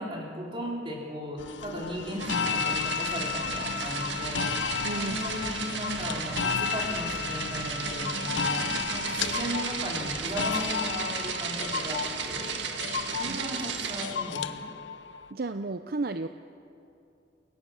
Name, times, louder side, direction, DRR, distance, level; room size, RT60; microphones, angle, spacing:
voice 1, 0.0-4.5 5.0-12.6 13.2-14.6, equal, 30° right, -2 dB, 4.1 m, -36 dB
sound 1, 1.4-15.3, left 6 dB, 90° left, 0.7 m, -33 dB
sound 2, 2.2-14.1, right 5 dB, 80° right, 1.8 m, -34 dB
voice 2, 4.8-5.2 13.3-13.4 15.3-16.3, right 3 dB, 55° right, 9 dB, 0.6 m, -32 dB
28.5 x 17.5 x 7.4 m, 2.6 s
head